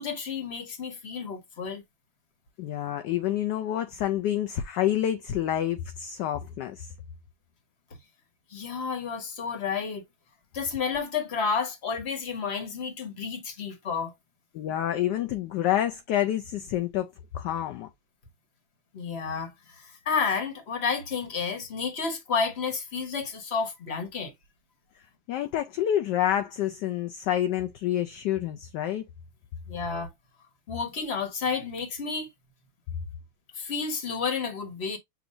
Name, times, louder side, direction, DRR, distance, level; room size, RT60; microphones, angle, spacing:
voice 1, 0.0-1.8 8.5-10.0 10.5-14.1 18.9-24.3 29.7-30.1 30.7-32.3 33.5-35.0, left 5 dB, 35° left, 1.4 m, -31 dB
voice 2, 2.6-6.9 14.5-17.9 25.3-29.1, left 11 dB, 70° left, 1.1 m, -28 dB
7.1 x 2.7 x 2.6 m
omnidirectional pair, 2.2 m